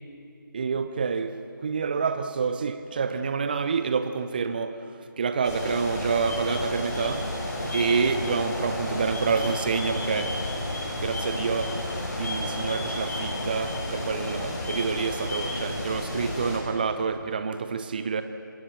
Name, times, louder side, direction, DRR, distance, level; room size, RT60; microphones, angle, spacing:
voice 1, 0.5-1.3 1.6-4.9 5.2-10.4 10.9-18.2, right 5 dB, 25° right, 0.7 m, -28 dB
sound 1, 5.4-16.6, left 1 dB, 50° left, 7.1 m, -31 dB
26.0 x 19.5 x 7.3 m
figure-of-eight pair, 160°, 12 cm